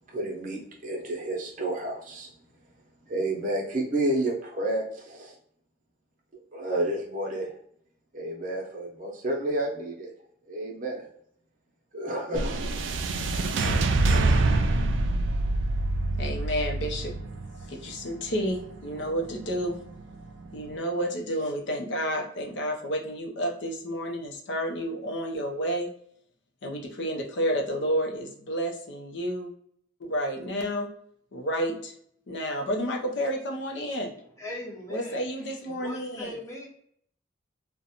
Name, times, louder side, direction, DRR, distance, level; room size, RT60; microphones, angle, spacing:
voice 1, 0.1-2.3 3.1-5.4 6.5-7.6 8.1-10.1 10.5-11.1 11.9-12.6, right 1 dB, 45° right, 0 dB, 0.7 m, -30 dB
sound 1, 12.3-20.7, right 2 dB, 70° right, 0.3 m, -27 dB
voice 2, 16.2-17.1 17.7-19.8 20.5-25.9 26.6-29.5 30.0-30.9 31.3-31.9 32.3-34.1 34.9-36.4, equal, 70° left, 2 dB, 0.6 m, -30 dB
voice 3, 34.4-35.2 35.7-36.7, left 1 dB, 15° left, -3 dB, 0.6 m, -39 dB
2.5 x 2.1 x 2.8 m, 0.65 s
head